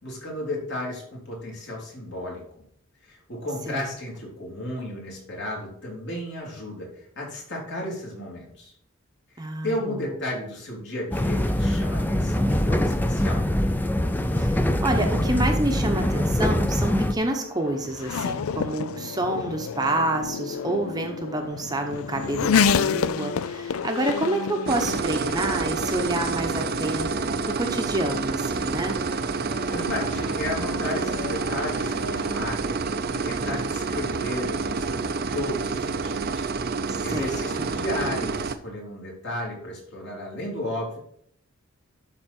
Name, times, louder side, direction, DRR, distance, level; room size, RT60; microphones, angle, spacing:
voice 1, 0.0-2.4 3.0-8.7 9.3-13.4 23.7-23.8 29.7-36.5 37.0-41.0, left 1 dB, 55° left, -3 dB, 3.1 m, -33 dB
voice 2, 9.4-10.0 14.4-27.1 27.4-29.0 36.9-37.3, right 1 dB, 20° right, 3 dB, 0.9 m, -28 dB
sound 1, 11.1-17.1, left 1 dB, 10° left, 0.5 m, -23 dB
Race car auto racing / Accelerating revving vroom, 17.1-32.4, left 6 dB, 75° left, 0.4 m, -30 dB
sound 2, 24.7-38.5, right 4 dB, 45° right, 0.5 m, -28 dB
11.5 x 4.2 x 4.4 m, 0.68 s
head